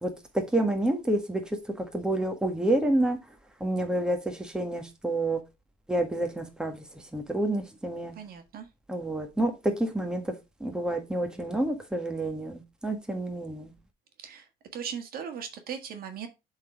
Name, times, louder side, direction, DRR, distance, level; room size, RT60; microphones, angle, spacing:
voice 1, 0.0-3.2 3.6-5.4 5.9-8.1 8.9-10.3 10.6-13.7, right 1 dB, 5° right, 1.6 m, -29 dB
voice 2, 8.1-8.7 14.2-16.3, right 7 dB, 60° right, 1.6 m, -38 dB
7.3 x 4.0 x 4.8 m
cardioid pair, 110°, 17 cm